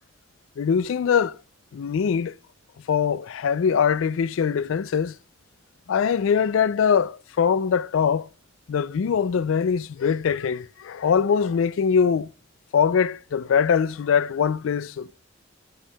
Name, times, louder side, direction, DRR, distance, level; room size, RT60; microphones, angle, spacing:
voice 1, 0.6-1.4 1.7-2.4 2.9-5.2 5.9-8.3 8.7-12.3 12.7-15.1, left 7 dB, 75° left, 0.4 m, -22 dB
11.5 x 10.0 x 2.2 m
head